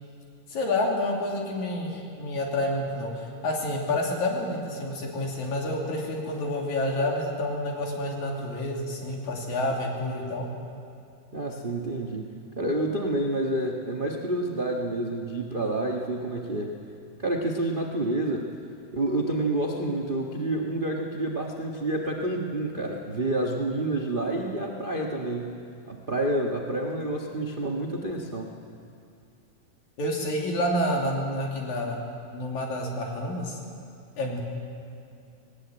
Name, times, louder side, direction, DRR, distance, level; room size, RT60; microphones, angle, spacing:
voice 1, 0.5-10.5 30.0-32.0 32.3-33.6 34.2-34.4, left 1 dB, 65° left, -1 dB, 4.1 m, -29 dB
voice 2, 11.3-12.2 12.6-16.7 17.2-18.5 18.9-25.5 25.9-28.5, right 1 dB, 50° right, 0 dB, 0.6 m, -28 dB
19.0 x 18.5 x 8.8 m, 2.5 s
omnidirectional pair, 3.6 m